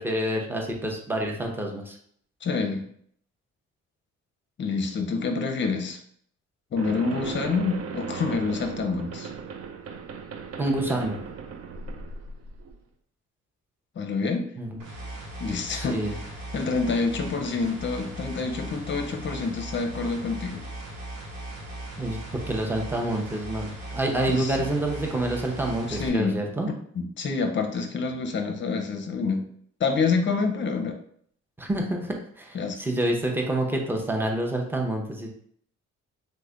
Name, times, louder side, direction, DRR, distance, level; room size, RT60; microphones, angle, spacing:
voice 1, 0.0-2.0 10.6-11.2 14.6-14.8 15.7-16.1 22.0-26.7 31.6-35.3, right 1 dB, 5° right, 1 dB, 0.6 m, -28 dB
voice 2, 2.4-2.9 4.6-6.0 6.7-9.3 14.0-14.5 15.4-16.1 16.5-20.6 24.3-24.6 25.9-26.4 26.7-29.4 29.8-31.0 32.5-32.8, left 4 dB, 40° left, 5 dB, 0.6 m, -27 dB
sound 1, 6.8-12.8, right 5 dB, 55° right, 0.5 m, -37 dB
sound 2, 14.8-26.1, right 1 dB, 75° right, 0.9 m, -38 dB
3.2 x 2.1 x 3.7 m, 0.63 s
cardioid pair, 90°, 30 cm